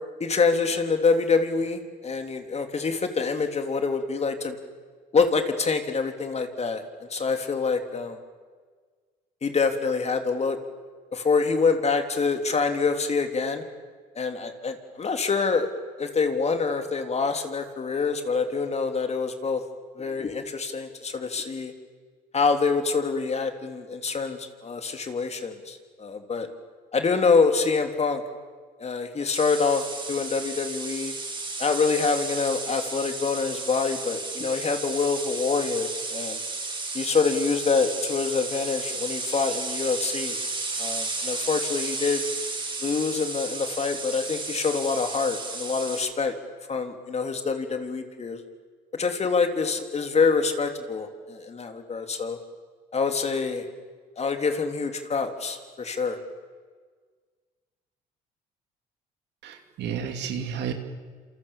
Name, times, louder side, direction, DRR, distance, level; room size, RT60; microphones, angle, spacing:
voice 1, 0.2-4.6 5.1-8.2 9.4-10.6 11.1-13.6 14.1-15.7 16.0-19.6 19.9-21.7 22.3-26.5 26.9-28.2 28.8-31.1 31.6-36.4 36.9-40.4 40.8-42.2 42.8-46.3 46.7-48.4 48.9-52.4 52.9-53.7 54.2-56.2, left 4 dB, 35° left, 6 dB, 3.4 m, -26 dB
sound 1, 29.3-46.0, right 3 dB, 25° right, 7.4 m, -33 dB
voice 2, 59.4-60.7, right 7 dB, 70° right, 6 dB, 3.0 m, -31 dB
28.0 x 27.5 x 7.4 m, 1.6 s
supercardioid pair, 70°, 18 cm